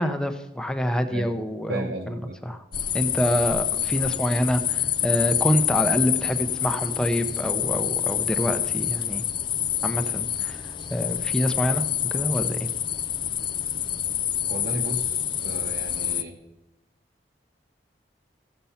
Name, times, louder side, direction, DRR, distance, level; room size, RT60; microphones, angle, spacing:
voice 1, 0.0-2.6 2.9-9.2 9.8-10.6 10.9-11.8 12.1-12.7, equal, 5° left, 7 dB, 0.7 m, -26 dB
voice 2, 1.7-2.4 14.5-16.3, right 1 dB, 80° right, -1 dB, 1.2 m, -34 dB
sound 1, 2.7-16.2, left 10 dB, 25° left, 0.4 m, -27 dB
15.0 x 6.8 x 5.8 m, 0.95 s
head